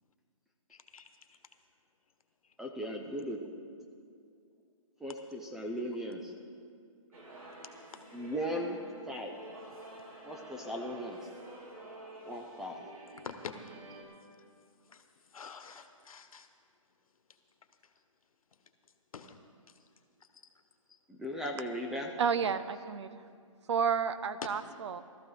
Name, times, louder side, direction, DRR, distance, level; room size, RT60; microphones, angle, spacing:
voice 1, 0.7-1.4 13.2-13.6 14.9-15.0 15.3-16.5 19.1-19.4, left 6 dB, 80° left, 7 dB, 1.3 m, -46 dB
voice 2, 2.6-3.4 5.0-6.3 8.1-8.8 9.1-9.4 10.2-11.2 12.2-12.8 21.1-22.1, equal, 5° right, 1 dB, 0.4 m, -37 dB
sound 1, 7.1-14.0, right 1 dB, 80° right, 3.1 m, -50 dB
voice 3, 22.2-23.2 23.7-25.0, right 6 dB, 55° right, 13 dB, 0.7 m, -31 dB
17.5 x 13.5 x 3.9 m, 2.2 s
hypercardioid pair, 155°, 18 cm